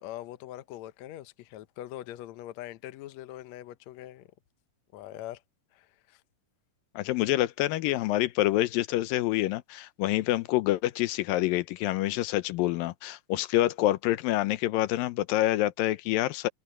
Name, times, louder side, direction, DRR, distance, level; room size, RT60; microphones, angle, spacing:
voice 1, 0.0-4.3 4.9-5.4 5.7-6.2, left 13 dB, 70° left, 1.8 m, -42 dB
voice 2, 7.0-16.5, left 16 dB, 90° left, 2.5 m, -27 dB
omnidirectional pair, 3.9 m